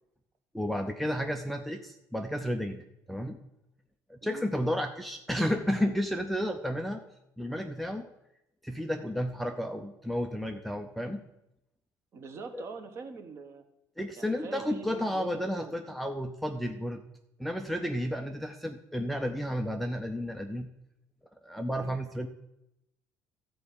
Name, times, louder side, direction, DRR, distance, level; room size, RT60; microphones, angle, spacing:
voice 1, 0.5-3.4 4.1-7.0 7.4-8.1 8.6-11.2 12.5-12.7 14.0-17.0 17.4-20.7 21.4-22.3, equal, ahead, 4 dB, 0.5 m, -32 dB
voice 2, 12.1-13.6 14.2-15.8 19.7-19.8 21.7-21.9, right 4 dB, 35° right, 7 dB, 1.2 m, -44 dB
13.0 x 4.7 x 8.5 m, 0.86 s
cardioid pair, 160°, 8 cm